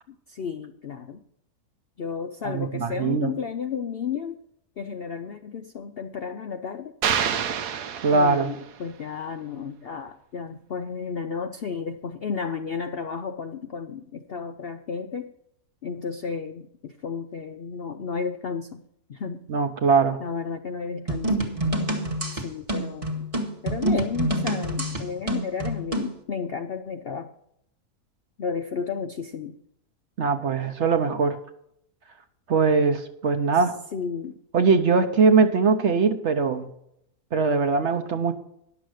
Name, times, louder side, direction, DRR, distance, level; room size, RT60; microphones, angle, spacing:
voice 1, 0.3-1.2 2.0-4.4 4.8-6.9 8.1-15.3 15.8-18.8 19.1-19.5 20.2-21.4 22.3-23.3 23.6-27.3 28.4-29.6 33.5-33.7 33.9-34.4, left 6 dB, 60° left, 7 dB, 0.6 m, -32 dB
voice 2, 2.4-3.3 8.0-8.5 19.5-20.2 30.2-31.4 32.5-33.7 34.5-36.7 37.3-38.4, right 4 dB, 55° right, 8 dB, 1.0 m, -21 dB
sound 1, 7.0-8.8, right 8 dB, 85° right, 1.4 m, -27 dB
sound 2, 21.1-26.1, right 1 dB, 25° right, 1.3 m, -27 dB
10.5 x 7.1 x 6.4 m, 0.75 s
omnidirectional pair, 1.7 m